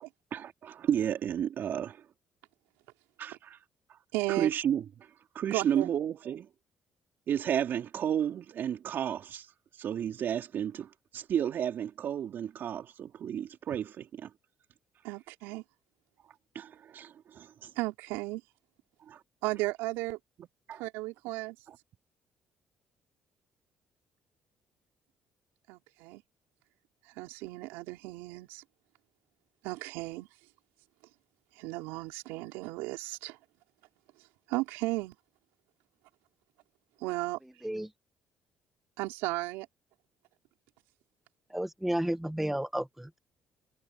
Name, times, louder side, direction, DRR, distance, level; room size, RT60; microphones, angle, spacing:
voice 1, 0.3-2.0 3.2-3.6 4.4-4.8 5.4-6.5 7.3-9.5 9.8-14.3 16.6-17.7 19.1-19.2 20.7-20.8 21.7-21.8, right 9 dB, 60° right, 3.5 m, -32 dB
voice 2, 4.1-4.5 5.5-5.9 15.0-15.6 17.8-18.4 19.4-20.2 20.7-21.6 25.7-26.2 27.1-28.6 29.6-30.3 31.5-33.4 34.5-35.1 37.0-37.4 39.0-39.7, right 21 dB, 85° right, 4.9 m, -34 dB
voice 3, 41.5-43.2, right 1 dB, 5° right, 1.4 m, -32 dB
supercardioid pair, 60°, 4 cm